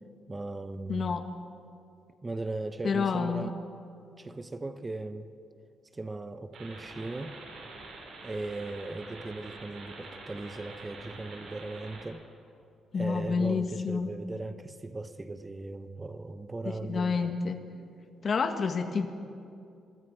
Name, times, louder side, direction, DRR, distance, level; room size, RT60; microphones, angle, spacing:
voice 1, 0.3-1.2 2.2-3.5 4.2-5.3 5.9-7.4 8.2-12.3 12.9-17.4, right 2 dB, 20° right, 10 dB, 1.0 m, -38 dB
voice 2, 0.9-1.2 2.8-3.5 12.9-14.1 16.6-17.6 18.2-19.1, left 5 dB, 50° left, 7 dB, 1.8 m, -29 dB
sound 1, 6.5-12.1, right 3 dB, 70° right, 6.0 m, -46 dB
25.0 x 23.5 x 4.9 m, 2.6 s
cardioid pair, 85°, 0 cm